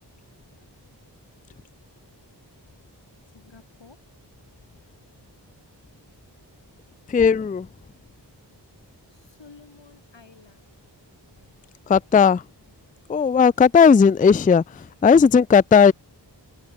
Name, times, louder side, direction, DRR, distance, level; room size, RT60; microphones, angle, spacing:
voice 1, 3.3-4.0 9.1-10.8 11.4-11.5, left 4 dB, 85° left, 3.7 m, -51 dB
voice 2, 7.1-7.7 11.9-12.4 13.1-15.9, left 6 dB, 20° left, 0.3 m, -16 dB
wide cardioid pair, 60°, 43 cm